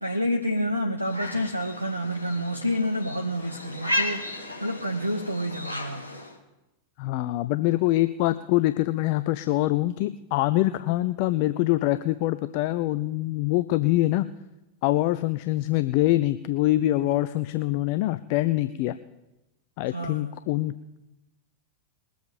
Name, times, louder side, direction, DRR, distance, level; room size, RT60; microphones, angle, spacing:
voice 1, 0.0-6.2 19.9-20.3, equal, 85° right, 10 dB, 0.7 m, -29 dB
sound 1, 1.1-6.4, left 1 dB, 80° left, 2.1 m, -34 dB
voice 2, 7.0-14.3 14.8-18.9 19.8-20.8, left 16 dB, 45° left, 13 dB, 0.4 m, -24 dB
21.0 x 7.7 x 5.1 m, 0.97 s
figure-of-eight pair, 90°, 0 cm